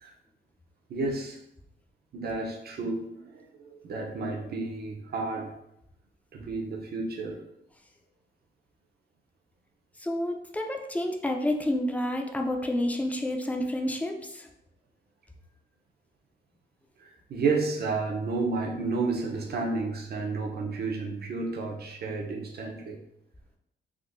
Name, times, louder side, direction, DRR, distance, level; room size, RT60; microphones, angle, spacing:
voice 1, 0.9-1.4 2.1-5.5 6.3-7.4 17.0-23.0, right 3 dB, 55° right, 1 dB, 0.6 m, -31 dB
voice 2, 10.0-14.5, left 1 dB, 10° left, 2 dB, 0.4 m, -29 dB
3.6 x 2.5 x 2.5 m, 0.81 s
cardioid pair, 115°, 19 cm